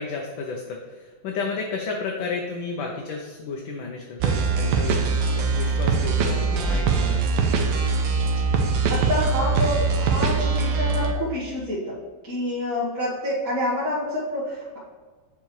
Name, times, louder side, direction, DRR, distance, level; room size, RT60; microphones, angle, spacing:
voice 1, 0.0-7.3, left 4 dB, 75° left, 0 dB, 1.4 m, -32 dB
sound 1, 4.2-11.1, right 4 dB, 70° right, 1.4 m, -22 dB
voice 2, 8.6-12.0 12.2-14.8, left 1 dB, 45° right, -9 dB, 1.8 m, -27 dB
8.0 x 4.7 x 3.2 m, 1.4 s
omnidirectional pair, 2.2 m